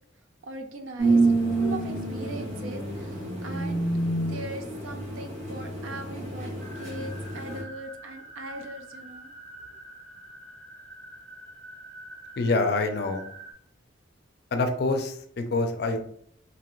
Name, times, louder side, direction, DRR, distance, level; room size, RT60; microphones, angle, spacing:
voice 1, 0.4-3.8 4.3-9.3, right 1 dB, 80° right, 6 dB, 0.4 m, -40 dB
sound 1, 1.0-7.6, right 2 dB, 35° right, 0.9 m, -28 dB
sound 2, 6.6-13.5, right 1 dB, 10° left, 1.2 m, -46 dB
voice 2, 12.4-13.3 14.5-16.0, left 3 dB, 55° left, 6 dB, 0.4 m, -26 dB
2.8 x 2.4 x 3.0 m, 0.63 s
head